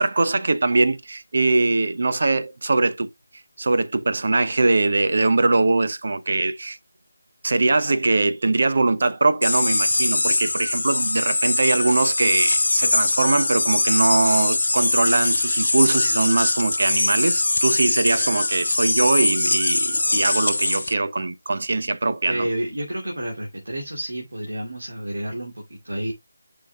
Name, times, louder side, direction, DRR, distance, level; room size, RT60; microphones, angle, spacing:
voice 1, 0.0-3.1 3.6-6.8 7.4-22.5, right 3 dB, 50° right, 0.8 m, -21 dB
sound 1, 9.4-20.9, left 2 dB, 60° left, 0.7 m, -22 dB
voice 2, 22.3-26.1, right 1 dB, 70° right, 2.6 m, -30 dB
9.8 x 5.8 x 2.3 m
figure-of-eight pair, 160°, 0 cm